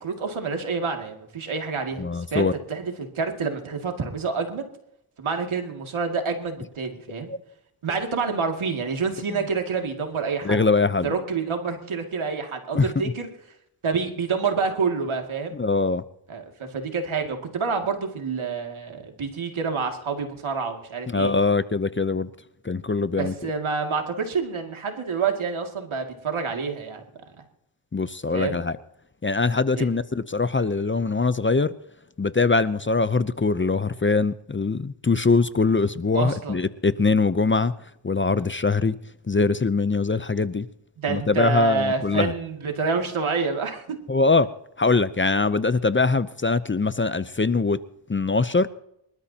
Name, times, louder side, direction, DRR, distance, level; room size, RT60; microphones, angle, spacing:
voice 1, 0.0-4.6 5.2-7.3 7.8-10.6 11.0-13.3 13.8-15.5 16.3-21.3 23.2-27.0 28.3-28.6 29.8-29.9 36.1-36.6 41.0-44.0, right 5 dB, 80° right, 3 dB, 2.5 m, -28 dB
voice 2, 2.0-2.5 7.3-7.4 10.4-11.1 12.7-12.9 15.5-16.0 21.1-22.3 22.6-23.3 27.9-28.8 29.2-31.7 32.2-37.7 38.0-39.0 39.3-40.7 41.1-42.3 44.1-44.5 44.8-47.8 48.1-48.7, left 3 dB, 25° left, 14 dB, 0.6 m, -22 dB
25.5 x 13.0 x 2.9 m, 0.79 s
cardioid pair, 60°, 48 cm